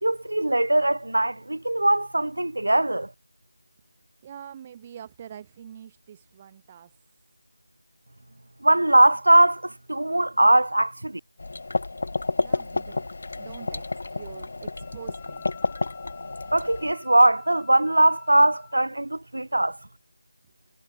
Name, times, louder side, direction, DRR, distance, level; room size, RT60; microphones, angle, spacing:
voice 1, 0.0-3.1 8.6-11.2 16.5-19.8, right 1 dB, 75° right, 2.1 m, -21 dB
voice 2, 4.2-6.9 12.4-15.4, right 9 dB, 20° right, 5.9 m, -45 dB
sound 1, 11.4-16.9, left 3 dB, 50° left, 7.8 m, -30 dB
Wind instrument woodwind instrument, 14.8-18.8, left 21 dB, 10° left, 6.0 m, -52 dB
figure-of-eight pair, 170°, 0 cm